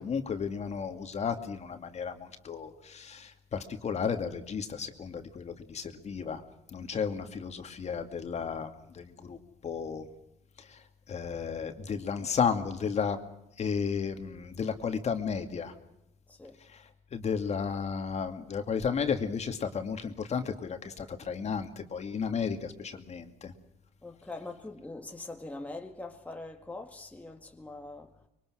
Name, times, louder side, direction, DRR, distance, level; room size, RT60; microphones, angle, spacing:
voice 1, 0.0-6.4 6.7-8.7 8.9-9.4 9.6-10.1 11.1-13.2 13.6-15.7 17.1-23.5, left 6 dB, 40° left, 2.4 m, -33 dB
voice 2, 24.0-28.1, left 2 dB, 10° left, 1.9 m, -42 dB
25.0 x 23.0 x 6.3 m
cardioid pair, 110°, 17 cm